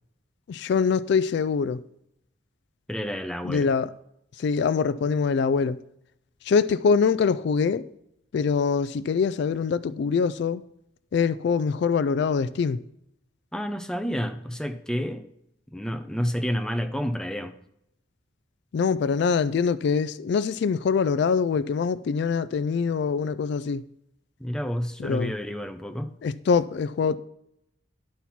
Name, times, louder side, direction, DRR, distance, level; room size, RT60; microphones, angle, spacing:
voice 1, 0.5-1.8 3.5-3.9 4.4-5.8 6.5-7.8 8.3-10.6 11.1-12.8 18.7-23.8 25.0-25.3 26.2-27.2, left 5 dB, 60° left, 0.3 m, -24 dB
voice 2, 2.9-3.7 13.5-15.3 15.7-17.5 24.4-26.1, equal, 5° left, 0.5 m, -30 dB
11.0 x 4.3 x 5.8 m
head